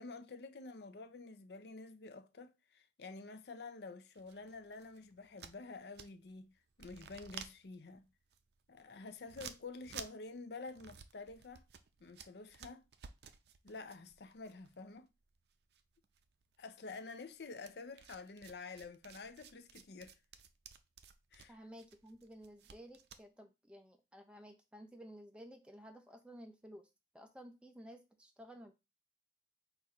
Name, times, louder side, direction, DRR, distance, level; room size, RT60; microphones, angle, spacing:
voice 1, 0.0-6.5 6.8-8.1 8.7-11.7 12.0-12.8 13.6-15.1 16.6-20.1 21.3-21.6, left 3 dB, 75° left, 0.6 m, -49 dB
sound 1, 4.1-6.4 6.7-15.5 15.7-16.6 17.6-23.2, right 7 dB, 70° right, 0.5 m, -54 dB
voice 2, 21.5-26.9 27.1-28.7, equal, 5° right, 0.5 m, -54 dB
4.3 x 2.6 x 4.8 m
head